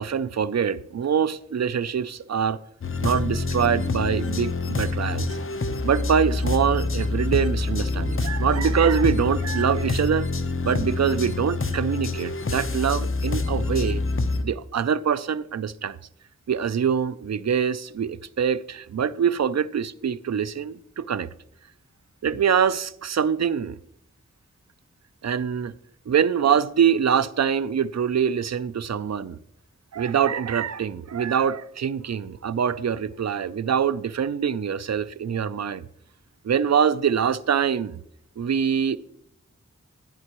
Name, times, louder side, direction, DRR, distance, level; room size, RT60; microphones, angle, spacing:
voice 1, 0.0-2.6 3.0-5.4 5.8-10.3 10.6-14.0 14.4-16.0 16.5-21.3 22.2-23.8 25.2-25.7 26.1-29.4 29.9-35.8 36.4-38.0 38.4-39.0, right 7 dB, 60° right, 0.5 m, -24 dB
sound 1, 2.8-14.4, left 3 dB, 45° left, 0.7 m, -26 dB
12.5 x 10.5 x 3.0 m
wide cardioid pair, 55°, 30 cm